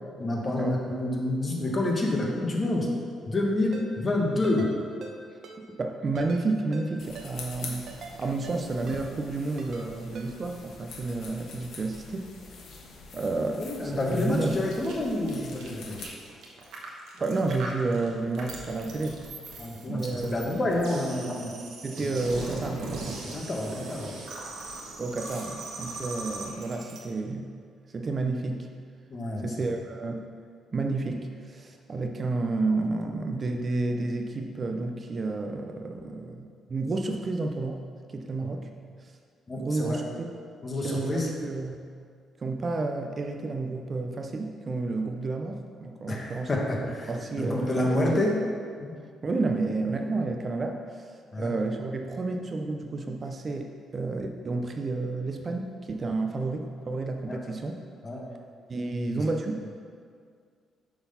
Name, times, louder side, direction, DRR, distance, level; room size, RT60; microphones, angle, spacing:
voice 1, 0.2-2.9 3.3-4.7 13.5-16.0 19.6-21.6 23.3-24.2 29.1-29.5 39.5-40.0 40.6-41.3 46.1-48.4 48.8-49.0 51.3-51.5 57.3-57.4 58.0-58.2 59.1-59.3, left 1 dB, 30° left, -1 dB, 1.3 m, -28 dB
Ringtone, 3.7-3.9 4.4-4.7 5.0-5.1 5.4-5.6 6.2-6.4 6.7-6.9 7.2-7.3 7.9-8.1 8.4-8.6 8.9-9.0 9.6-9.8 10.2-10.3, right 5 dB, 60° right, 0.9 m, -43 dB
voice 2, 5.6-7.9 8.2-12.3 13.1-14.6 17.2-19.2 19.9-20.4 21.8-23.2 25.0-27.5 27.9-28.7 29.4-30.2 30.7-37.8 38.1-38.7 39.0-39.1 39.6-40.3 40.8-41.8 42.4-46.5 46.8-48.2 49.2-57.8 58.7-59.6, right 3 dB, 35° right, 4 dB, 0.5 m, -31 dB
sound 1, 7.0-16.1, left 4 dB, 70° left, 1.0 m, -45 dB
sound 2, 14.4-27.0, right 3 dB, 80° right, 1.2 m, -40 dB
6.9 x 3.9 x 5.6 m, 2.1 s
cardioid pair, 90°, 0 cm